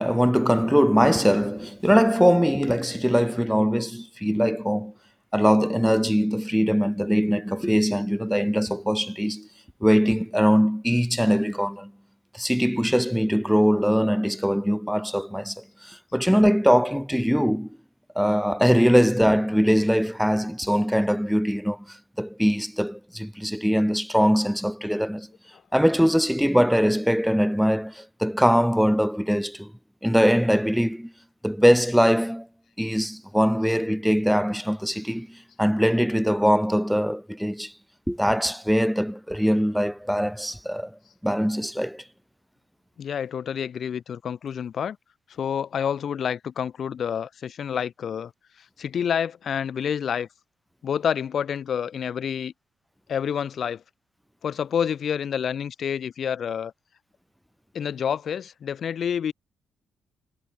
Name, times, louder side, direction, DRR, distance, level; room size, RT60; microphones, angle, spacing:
voice 1, 0.0-4.9 5.3-9.5 9.8-11.9 12.3-17.7 18.1-25.3 25.7-29.7 30.0-31.1 31.4-32.5 32.8-37.7 38.1-40.9 41.2-42.0, equal, ahead, 3.2 m, -22 dB
voice 2, 43.0-45.0 45.3-48.3 48.6-50.3 50.8-52.5 53.1-53.8 54.4-56.7 57.7-59.3, left 8 dB, 55° left, 4.5 m, -28 dB
cardioid pair, 90°, 0 cm